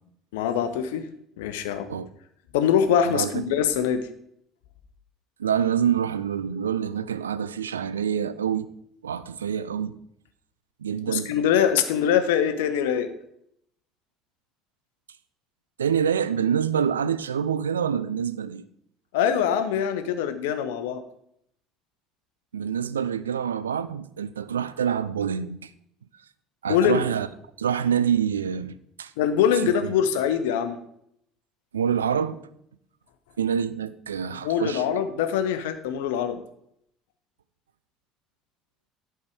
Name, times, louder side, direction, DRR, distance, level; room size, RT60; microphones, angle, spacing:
voice 1, 0.3-1.1 1.4-1.9 2.5-4.1 11.0-13.1 19.1-21.0 26.7-27.0 29.2-30.8 34.4-36.4, left 8 dB, 65° left, 0.7 m, -23 dB
voice 2, 5.4-8.7 9.0-10.0 10.8-11.3 15.8-18.6 22.5-25.7 26.6-27.3 27.6-29.1 29.6-29.9 31.7-32.4 33.4-35.0, right 8 dB, 75° right, 0.4 m, -26 dB
11.0 x 4.7 x 4.8 m
figure-of-eight pair, 60°, 0 cm